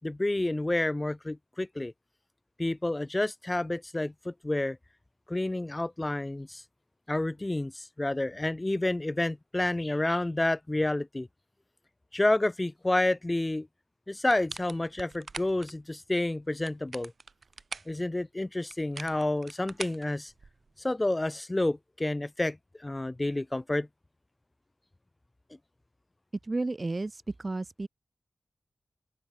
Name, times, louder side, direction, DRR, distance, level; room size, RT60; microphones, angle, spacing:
voice 1, 0.0-1.9 2.6-4.8 5.3-6.6 7.1-11.3 12.1-13.7 14.1-17.1 17.9-20.3 20.8-23.9, left 2 dB, 25° left, 6.2 m, -29 dB
sound 1, 14.3-15.7 16.5-18.0 18.7-20.7, right 4 dB, 65° right, 7.5 m, -43 dB
voice 2, 26.5-27.9, right 2 dB, 40° right, 2.2 m, -32 dB
open air
cardioid pair, 60°, 0 cm